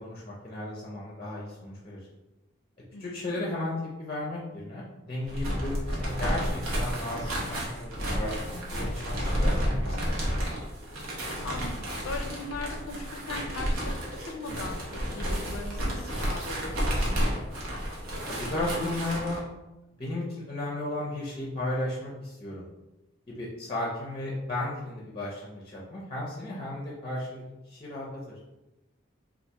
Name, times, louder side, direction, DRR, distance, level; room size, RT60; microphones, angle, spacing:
voice 1, 0.0-2.0 3.0-10.1 18.3-19.4 20.0-22.6 23.3-28.4, left 1 dB, 25° left, -4 dB, 0.5 m, -34 dB
voice 2, 2.9-3.3 11.4-14.0 14.3-14.8 15.1-17.0, left 3 dB, 90° left, 5 dB, 0.5 m, -39 dB
sound 1, 5.2-19.4, equal, 90° right, 0.8 m, -31 dB
3.2 x 2.4 x 2.8 m, 1.0 s
head